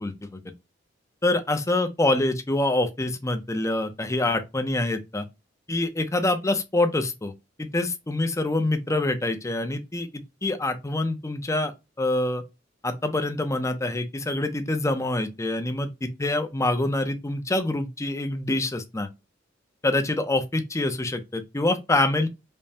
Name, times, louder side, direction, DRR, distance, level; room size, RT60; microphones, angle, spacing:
voice 1, 0.0-0.4 1.2-5.2 5.7-7.3 7.6-12.4 12.8-19.1 19.8-22.3, left 2 dB, 15° left, 0.5 m, -26 dB
5.2 x 2.1 x 2.7 m
head